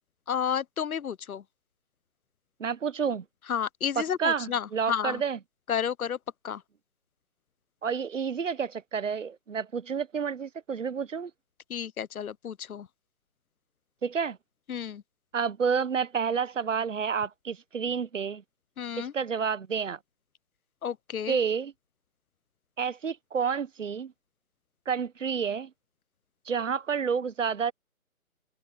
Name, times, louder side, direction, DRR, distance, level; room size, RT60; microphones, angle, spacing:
voice 1, 0.3-1.4 3.5-5.2 5.7-6.2 6.4-6.6 11.7-12.9 14.7-15.0 18.8-19.1 20.8-21.4, left 8 dB, 70° left, 0.7 m, -31 dB
voice 2, 2.6-3.2 4.2-5.4 7.8-11.3 14.0-14.4 15.3-18.4 19.0-20.0 21.3-21.7 22.8-24.1 24.9-25.7 26.5-27.7, right 6 dB, 55° right, 1.1 m, -29 dB
open air
hypercardioid pair, 165°, 44 cm